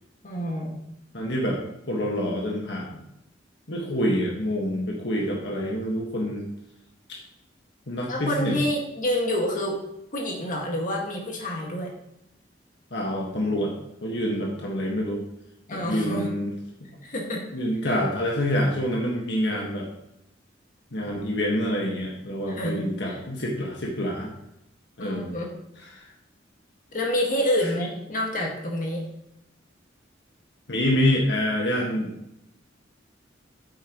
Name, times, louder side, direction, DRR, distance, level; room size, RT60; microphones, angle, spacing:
voice 1, 0.2-0.8 8.1-9.8 10.1-11.9 15.7-16.3 17.0-17.4 17.8-18.0 22.5-22.8 23.1-23.2 25.0-25.5 26.9-29.0, left 1 dB, 45° left, 0 dB, 1.9 m, -28 dB
voice 2, 1.1-1.6 1.9-3.0 3.7-6.5 7.1-7.2 7.9-8.6 12.9-13.7 14.0-15.2 15.7-16.5 17.5-19.9 20.9-24.3 25.0-25.3 25.9-26.1 30.7-32.1, equal, 65° left, -1 dB, 1.6 m, -26 dB
9.3 x 8.5 x 3.1 m, 0.82 s
head